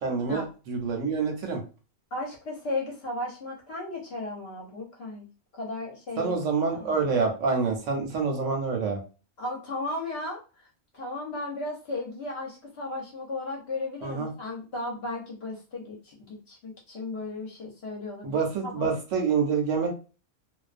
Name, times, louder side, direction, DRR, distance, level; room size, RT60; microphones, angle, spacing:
voice 1, 0.0-1.6 6.2-9.0 14.0-14.3 18.2-20.0, right 5 dB, 70° right, 3 dB, 0.9 m, -27 dB
voice 2, 2.1-5.3 5.5-6.4 6.7-7.1 9.4-10.7 10.9-18.9, left 2 dB, 55° left, -2 dB, 0.8 m, -35 dB
2.4 x 2.1 x 2.4 m, 0.34 s
omnidirectional pair, 1.5 m